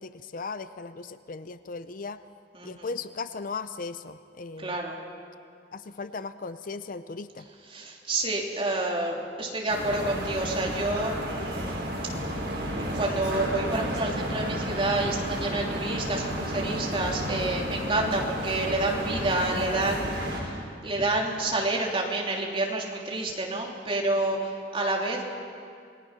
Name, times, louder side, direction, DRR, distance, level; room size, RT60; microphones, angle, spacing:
voice 1, 0.0-2.2 2.6-4.8 5.7-7.5, left 4 dB, 50° left, 12 dB, 0.6 m, -37 dB
voice 2, 2.5-2.9 4.6-5.0 7.7-11.9 12.8-25.2, right 2 dB, 30° right, -1 dB, 3.1 m, -29 dB
sound 1, 9.7-20.4, equal, 70° right, 5.6 m, -32 dB
28.0 x 19.5 x 5.8 m, 2.3 s
head